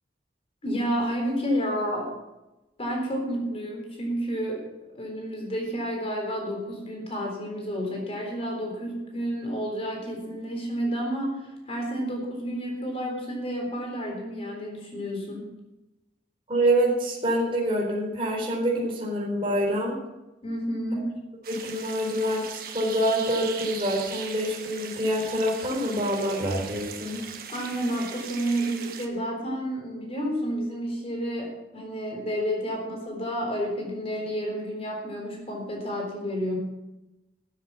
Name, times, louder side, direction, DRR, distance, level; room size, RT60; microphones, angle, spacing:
voice 1, 0.6-2.1 2.8-4.6 4.9-15.5 20.4-21.1 27.5-36.6, equal, 35° left, 0 dB, 3.9 m, -30 dB
voice 2, 16.5-20.0 21.5-27.2, right 1 dB, 30° right, -3 dB, 4.3 m, -26 dB
sound 1, 21.4-29.1, right 7 dB, 55° right, 1.5 m, -39 dB
13.5 x 7.9 x 7.2 m, 0.99 s
head